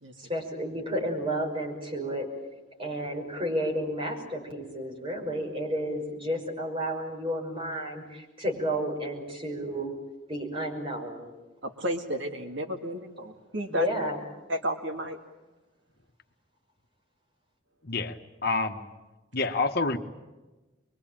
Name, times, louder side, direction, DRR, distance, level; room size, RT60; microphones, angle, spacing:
voice 1, 0.2-2.3 2.8-9.9 10.3-11.3 13.7-14.2, equal, 30° right, -1 dB, 6.2 m, -31 dB
voice 2, 11.6-13.9 14.5-15.2, equal, 70° right, 5 dB, 2.1 m, -32 dB
voice 3, 17.8-18.9 19.3-20.0, left 3 dB, 50° left, 6 dB, 1.4 m, -28 dB
24.5 x 23.5 x 9.0 m, 1.1 s
head